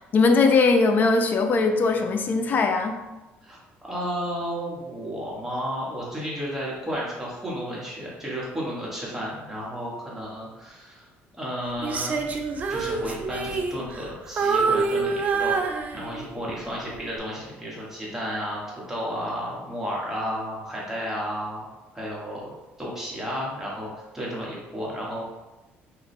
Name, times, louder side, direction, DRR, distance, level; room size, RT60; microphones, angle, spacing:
voice 1, 0.1-3.0, left 4 dB, 40° left, 5 dB, 0.4 m, -20 dB
voice 2, 3.4-11.0 11.4-12.4 12.7-15.5 15.9-21.7 21.9-22.5 22.8-25.3, equal, 10° right, -5 dB, 1.0 m, -32 dB
Female singing, 11.8-14.1 14.4-16.4 16.9-17.2, right 4 dB, 35° right, 0.4 m, -26 dB
3.0 x 2.2 x 4.2 m, 1.1 s
cardioid pair, 120°, 5 cm